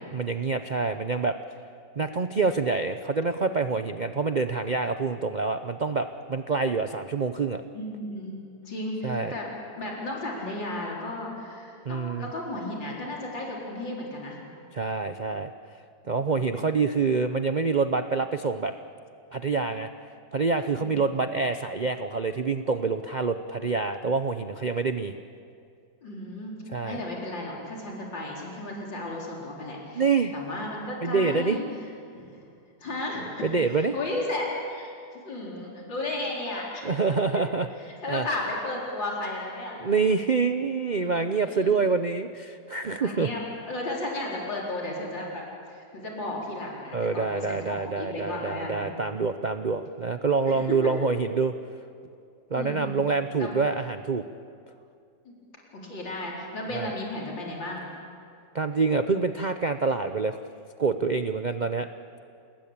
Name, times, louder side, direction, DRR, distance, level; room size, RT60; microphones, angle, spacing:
voice 1, 0.1-1.4 2.0-7.6 9.0-9.3 11.8-12.3 14.7-15.5 16.1-18.7 19.3-19.9 20.3-25.1 26.7-27.0 29.9-30.3 31.0-31.6 33.4-33.9 36.8-37.7 38.1-38.3 39.8-43.3 46.9-51.5 52.5-54.2 56.7-56.9 58.5-60.4 60.8-61.9, right 4 dB, 80° right, 8 dB, 0.4 m, -26 dB
voice 2, 7.7-9.5 9.8-14.4 16.2-16.8 20.8-21.1 26.0-26.6 26.8-31.6 32.1-32.4 32.8-34.9 35.2-37.0 37.3-37.4 38.0-39.8 40.7-41.7 43.0-45.4 45.7-48.9 49.3-49.5 50.5-50.9 52.5-52.9 53.4-53.5 55.2-55.3 55.7-57.8, left 2 dB, 80° left, -3 dB, 5.0 m, -34 dB
28.5 x 20.0 x 8.8 m, 2.4 s
omnidirectional pair, 2.0 m